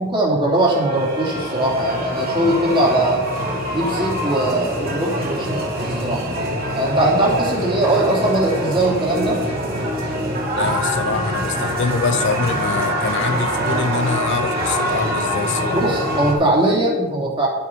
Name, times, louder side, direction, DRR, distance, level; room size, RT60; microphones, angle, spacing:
voice 1, 0.0-3.2 3.7-6.2 6.7-9.4 15.7-17.5, right 1 dB, 25° right, 2.9 m, -20 dB
sound 1, 0.6-16.3, equal, 45° right, 2.9 m, -24 dB
voice 2, 10.6-15.8, left 5 dB, 55° left, 0.5 m, -24 dB
11.0 x 9.3 x 5.4 m
head